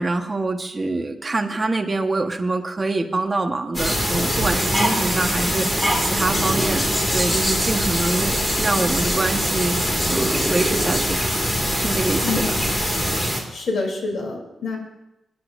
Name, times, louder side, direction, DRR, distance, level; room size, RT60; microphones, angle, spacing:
voice 1, 0.0-6.9 7.1-11.4 11.7-12.4, right 2 dB, 25° right, 4 dB, 1.3 m, -25 dB
sound 1, 3.7-13.4, equal, 15° left, 2.4 m, -22 dB
voice 2, 12.2-12.6 13.5-14.8, left 3 dB, 65° left, 0 dB, 3.4 m, -27 dB
26.5 x 10.0 x 2.7 m, 0.90 s
wide cardioid pair, 115°, 0 cm